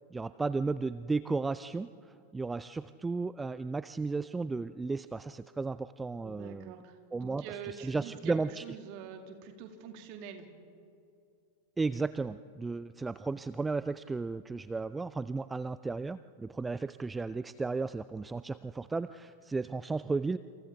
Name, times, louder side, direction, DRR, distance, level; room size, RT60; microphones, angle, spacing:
voice 1, 0.1-1.9 2.3-6.8 7.1-8.6 11.8-20.4, right 3 dB, 10° right, 14 dB, 0.4 m, -34 dB
voice 2, 6.2-8.3 8.6-10.5, right 8 dB, 45° right, 5 dB, 2.2 m, -45 dB
28.0 x 27.0 x 3.5 m, 2.5 s
figure-of-eight pair, 90°, 0 cm